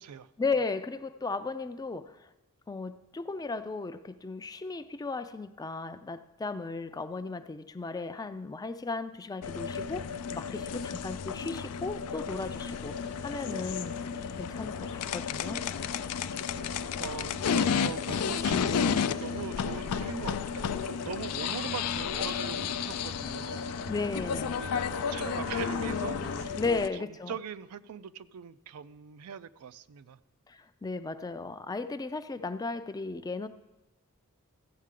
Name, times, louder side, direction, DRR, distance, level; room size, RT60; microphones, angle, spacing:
voice 1, 0.4-2.3 2.7-14.0 14.4-16.0 23.9-24.6 26.6-27.3 30.5-33.5, left 3 dB, 15° left, 11 dB, 0.3 m, -35 dB
sound 1, 9.4-26.9, left 7 dB, 85° left, 0.4 m, -32 dB
sound 2, 12.3-26.5, left 4 dB, 55° left, 0.7 m, -43 dB
voice 2, 17.0-23.7 24.6-30.2, right 7 dB, 80° right, 14 dB, 0.4 m, -41 dB
14.5 x 7.4 x 3.7 m, 1.0 s
head